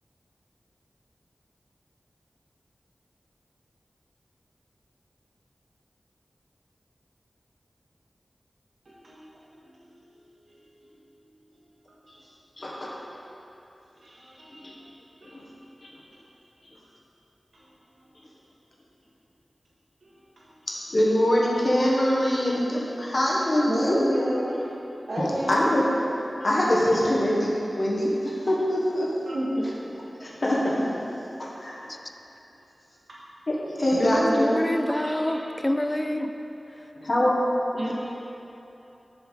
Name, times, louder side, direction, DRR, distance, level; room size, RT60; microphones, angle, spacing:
voice 1, 8.8-10.0 14.0-14.7 15.2-15.4 17.5-17.6 20.4-20.5 23.5-24.7 25.1-25.8 29.3-30.0 31.7-31.8 33.1-33.2 35.0-35.4 37.7-37.9, equal, 75° right, -7 dB, 1.7 m, -31 dB
voice 2, 20.9-24.0 25.5-25.9 26.4-29.1 30.2-31.0 31.4-31.8 33.5-34.5 36.9-37.4, equal, 50° left, -5 dB, 1.3 m, -23 dB
voice 3, 34.0-36.3, left 1 dB, 20° left, 6 dB, 0.4 m, -26 dB
7.2 x 6.8 x 4.0 m, 2.9 s
wide cardioid pair, 70°, 0 cm